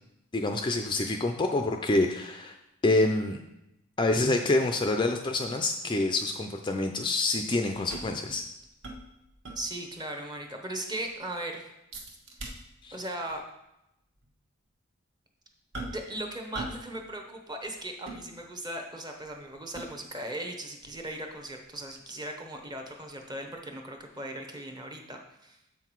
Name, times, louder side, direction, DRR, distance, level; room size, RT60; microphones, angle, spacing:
voice 1, 0.3-2.5 2.8-3.4 4.0-8.4 12.8-13.0, left 2 dB, 20° left, 4 dB, 0.4 m, -27 dB
sound 1, 7.7-10.0 10.4-10.5 10.8-11.3 11.9-13.0 13.3-13.5 14.2-14.3 15.7-16.2 16.5-16.9 17.2-18.8 19.2-20.2 20.8-23.6 24.0-24.1, right 2 dB, 60° right, 1.3 m, -43 dB
voice 2, 9.5-11.6 12.9-13.4 15.9-25.6, right 1 dB, 20° right, 3 dB, 0.9 m, -38 dB
7.3 x 5.8 x 4.6 m, 0.88 s
head